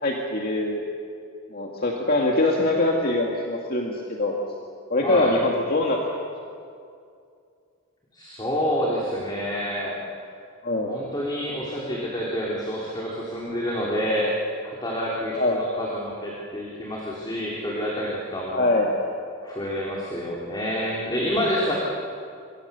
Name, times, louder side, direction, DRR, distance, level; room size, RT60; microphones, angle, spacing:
voice 1, 0.0-0.8 1.5-4.4 4.9-6.0 10.6-11.0 15.3-15.6 18.5-19.0, left 2 dB, 45° left, 0 dB, 2.2 m, -23 dB
voice 2, 5.0-5.3 8.1-10.0 10.9-14.4 14.6-18.7 19.4-21.7, equal, 20° left, -5 dB, 3.5 m, -28 dB
27.0 x 24.5 x 6.9 m, 2.4 s
head